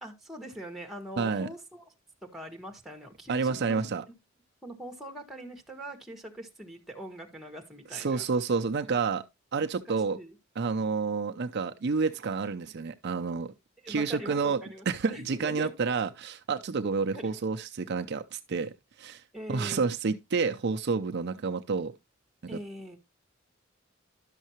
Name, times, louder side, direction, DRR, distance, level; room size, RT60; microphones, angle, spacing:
voice 1, 0.0-1.9 2.2-4.2 4.6-8.3 9.8-10.4 13.8-15.7 17.0-17.4 19.3-19.9 22.5-23.0, right 1 dB, ahead, 1.6 m, -43 dB
voice 2, 1.2-1.5 3.3-4.0 7.9-9.2 9.5-10.2 10.6-13.5 13.9-14.6 14.9-18.7 19.0-19.2 19.5-21.9 22.5-22.6, right 4 dB, 55° right, 0.5 m, -29 dB
11.5 x 6.5 x 3.0 m
head